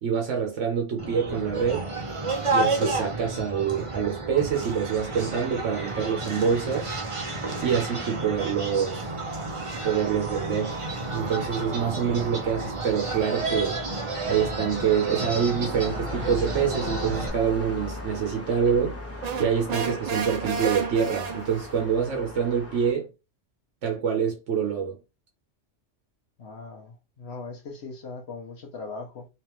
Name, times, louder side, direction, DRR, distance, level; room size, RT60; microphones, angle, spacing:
voice 1, 0.0-1.9 2.5-6.9 7.6-9.0 9.8-10.7 11.1-13.8 14.2-19.0 19.4-23.1 23.8-25.0, right 7 dB, 75° right, 1.2 m, -26 dB
sound 1, 1.0-17.3, right 3 dB, 30° right, 0.8 m, -31 dB
sound 2, 4.9-22.9, left 2 dB, 15° left, 0.9 m, -41 dB
voice 2, 7.3-7.6 16.6-17.3 26.4-29.3, left 4 dB, 60° left, 1.0 m, -40 dB
sound 3, 19.2-21.8, right 6 dB, 55° right, 0.4 m, -32 dB
3.5 x 3.2 x 3.0 m
omnidirectional pair, 1.3 m